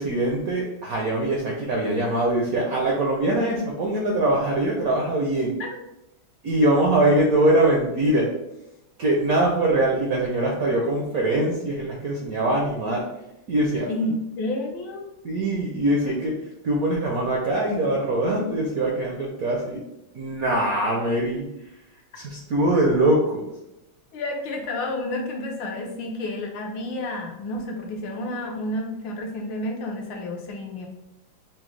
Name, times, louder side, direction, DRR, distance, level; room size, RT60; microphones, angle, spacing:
voice 1, 0.0-5.6 6.4-8.3 9.0-13.0 13.5-13.9 15.2-16.4 16.6-19.8 20.1-21.5 22.1-23.4, right 1 dB, 70° right, -2 dB, 0.8 m, -22 dB
voice 2, 13.9-15.1 24.1-30.9, left 1 dB, 75° left, 1 dB, 1.3 m, -30 dB
6.1 x 2.0 x 3.1 m, 0.87 s
omnidirectional pair, 2.2 m